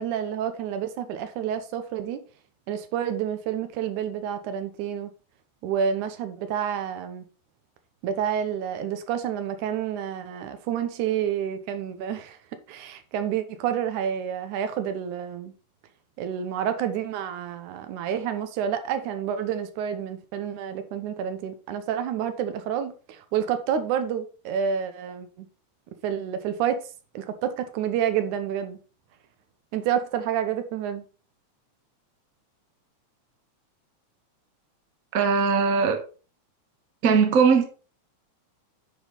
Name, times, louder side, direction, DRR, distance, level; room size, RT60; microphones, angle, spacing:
voice 1, 0.0-2.2 2.7-5.1 5.6-7.3 8.0-12.4 12.7-15.5 16.2-25.5 26.0-26.8 27.1-28.8 29.7-31.1, right 8 dB, 85° right, 2.4 m, -29 dB
voice 2, 35.1-36.0 37.0-37.6, right 5 dB, 50° right, 1.0 m, -20 dB
9.5 x 5.4 x 3.9 m
omnidirectional pair, 3.4 m